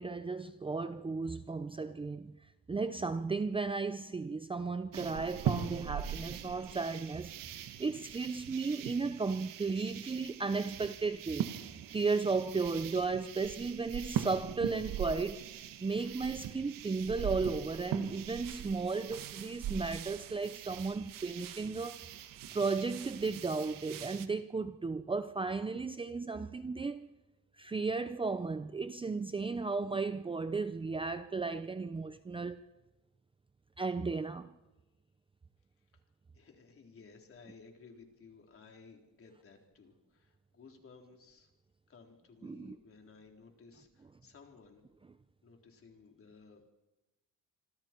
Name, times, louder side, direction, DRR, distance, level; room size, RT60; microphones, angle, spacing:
voice 1, 0.0-2.4 2.7-11.4 11.9-15.5 15.8-22.0 22.5-27.1 27.6-32.6 33.8-34.5 42.4-42.8, right 4 dB, 15° right, 0.6 m, -35 dB
sound 1, 4.9-24.3, right 9 dB, 75° right, 1.7 m, -41 dB
voice 2, 36.3-41.5 41.9-44.8 45.4-46.7, left 5 dB, 40° left, 3.9 m, -57 dB
26.0 x 26.0 x 4.6 m
cardioid pair, 125°, 33 cm